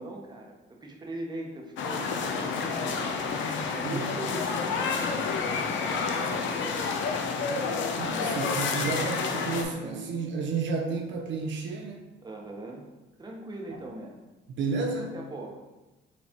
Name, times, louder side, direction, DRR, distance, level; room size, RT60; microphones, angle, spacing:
voice 1, 0.0-3.1 3.7-6.6 9.8-10.0 12.2-12.9 13.2-14.2 14.9-15.7, right 2 dB, 20° right, 0 dB, 0.8 m, -40 dB
sound 1, 1.8-9.6, left 5 dB, 75° left, 0.5 m, -29 dB
voice 2, 8.0-12.1 13.7-13.8 14.6-15.1, right 4 dB, 70° right, 1 dB, 0.5 m, -31 dB
4.2 x 3.2 x 2.9 m, 1.1 s
cardioid pair, 90°, 20 cm